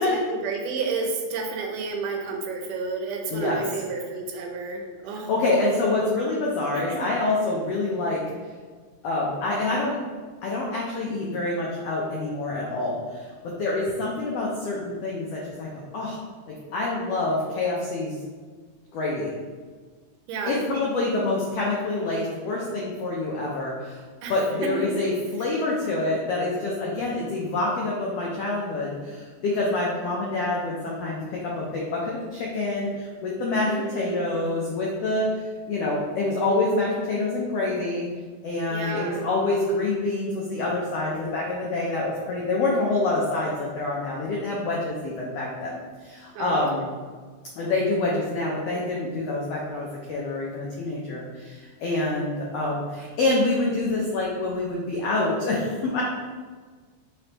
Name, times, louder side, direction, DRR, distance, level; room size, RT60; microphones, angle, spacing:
voice 1, 0.0-5.3 6.7-7.0 20.3-20.6 24.2-24.3 24.6-24.9 33.7-34.5 38.7-39.2 46.3-46.6, right 4 dB, 85° right, 2 dB, 2.2 m, -31 dB
voice 2, 3.3-3.6 5.3-8.2 9.0-10.0 10.4-15.7 15.9-16.2 16.5-18.2 18.9-19.3 20.5-24.0 24.3-35.3 35.7-38.1 38.4-46.8 47.6-56.0, left 2 dB, 90° left, -4 dB, 1.4 m, -26 dB
5.1 x 3.3 x 2.9 m, 1.5 s
omnidirectional pair, 3.6 m